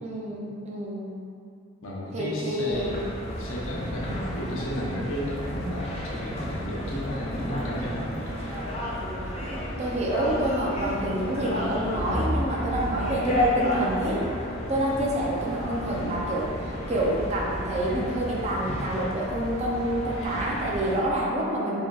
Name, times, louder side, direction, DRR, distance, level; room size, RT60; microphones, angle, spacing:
voice 1, 0.0-1.2 2.1-3.1 9.8-14.3 14.7-16.5 16.9-21.8, right 1 dB, 35° right, -4 dB, 0.5 m, -28 dB
voice 2, 1.8-3.0 3.4-8.1 8.4-8.6, equal, 80° left, -5 dB, 0.8 m, -33 dB
sound 1, 2.7-21.0, left 1 dB, 30° left, 0.4 m, -31 dB
4.8 x 2.8 x 2.3 m, 2.4 s
head